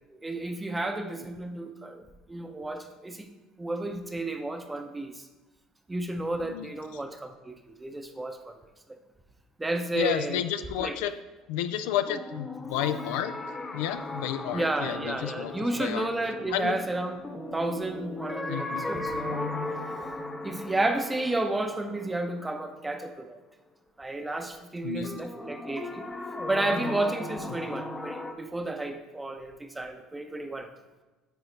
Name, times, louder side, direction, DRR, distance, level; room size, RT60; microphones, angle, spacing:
voice 1, 0.1-2.0 2.3-3.3 3.6-5.3 5.9-8.5 8.9-9.0 9.6-10.4 10.8-11.0 14.5-17.2 17.5-19.5 20.4-23.4 24.0-26.1 26.5-30.7, right 2 dB, 15° right, 7 dB, 0.7 m, -32 dB
voice 2, 9.9-11.1 11.5-13.4 13.7-15.5 15.8-16.1 16.5-16.8 18.5-18.8 24.8-25.2, left 11 dB, 85° left, 10 dB, 0.4 m, -31 dB
sound 1, 12.1-22.9 25.0-28.3, left 2 dB, 20° left, 0.7 m, -37 dB
8.9 x 4.0 x 3.3 m, 1.1 s
supercardioid pair, 95°, 0 cm